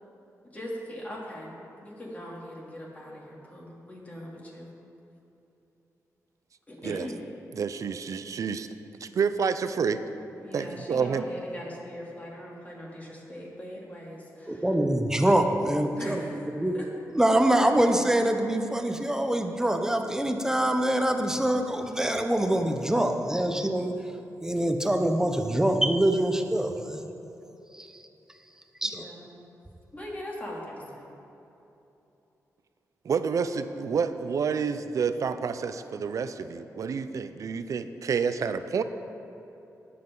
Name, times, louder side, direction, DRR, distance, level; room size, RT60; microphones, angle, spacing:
voice 1, 0.5-4.8 6.7-7.2 10.4-14.8 16.0-16.5 16.7-16.9 28.8-29.3 29.9-31.1, equal, 25° left, -4 dB, 2.8 m, -40 dB
voice 2, 7.5-8.7 9.0-10.0 10.5-11.2 33.0-38.8, right 6 dB, 65° right, 11 dB, 0.5 m, -29 dB
voice 3, 14.5-16.3 16.5-16.8 17.1-23.9 24.4-27.0 27.8-27.9 28.8-29.0, right 1 dB, 10° right, 5 dB, 0.8 m, -24 dB
19.5 x 7.8 x 3.9 m, 3.0 s
wide cardioid pair, 115°, 6 cm